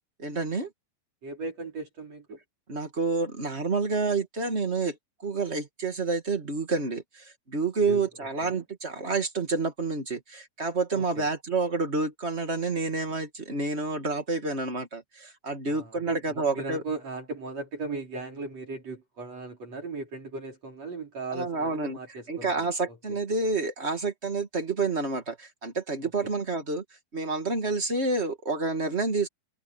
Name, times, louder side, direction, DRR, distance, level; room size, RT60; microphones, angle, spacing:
voice 1, 0.2-0.7 2.7-5.0 5.2-16.8 21.3-22.0 22.3-26.8 27.1-29.3, right 3 dB, 25° right, 1.6 m, -29 dB
voice 2, 1.2-2.4 7.9-8.0 8.4-8.6 10.9-11.3 15.7-23.2 26.2-26.3, right 3 dB, 50° right, 5.8 m, -37 dB
omnidirectional pair, 3.9 m